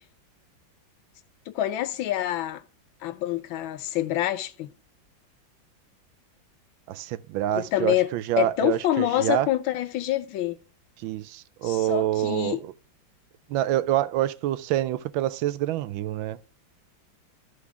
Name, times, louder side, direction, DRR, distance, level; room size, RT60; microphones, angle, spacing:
voice 1, 1.5-2.6 3.0-4.7 7.6-8.1 8.4-10.6 11.6-12.6, left 13 dB, 80° left, 1.5 m, -26 dB
voice 2, 6.9-9.5 11.0-12.7 13.5-16.4, right 13 dB, 80° right, 1.3 m, -26 dB
13.0 x 4.9 x 3.3 m
omnidirectional pair, 2.1 m